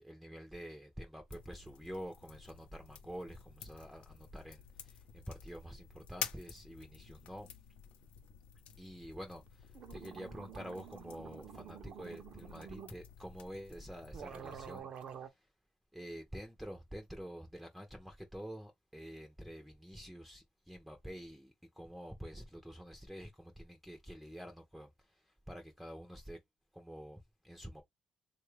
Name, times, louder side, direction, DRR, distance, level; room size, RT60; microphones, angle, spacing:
voice 1, 0.0-7.5 8.8-9.4 9.9-14.9 15.2-15.4 15.9-26.4 26.7-27.8, equal, ahead, 0.5 m, -48 dB
sound 1, 1.3-14.8, left 8 dB, 85° left, 0.6 m, -51 dB
sound 2, 9.5-9.6 9.7-12.9 13.7-13.8 14.1-15.3, right 8 dB, 55° right, 0.6 m, -49 dB
3.6 x 2.3 x 3.1 m
cardioid pair, 160°, 2 cm